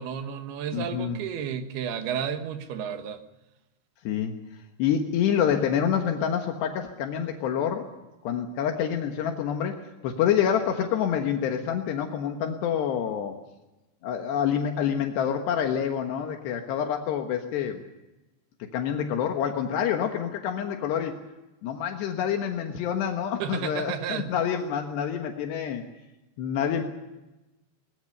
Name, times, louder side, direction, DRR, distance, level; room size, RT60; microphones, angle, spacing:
voice 1, 0.0-3.2 23.4-24.3, right 8 dB, 70° right, 8 dB, 3.3 m, -32 dB
voice 2, 0.7-1.2 4.1-4.3 4.8-7.9 8.2-13.4 14.0-17.8 18.7-21.1 21.6-25.8 26.4-26.8, left 8 dB, 80° left, 4 dB, 3.5 m, -27 dB
21.0 x 20.5 x 6.7 m, 1.0 s
omnidirectional pair, 4.9 m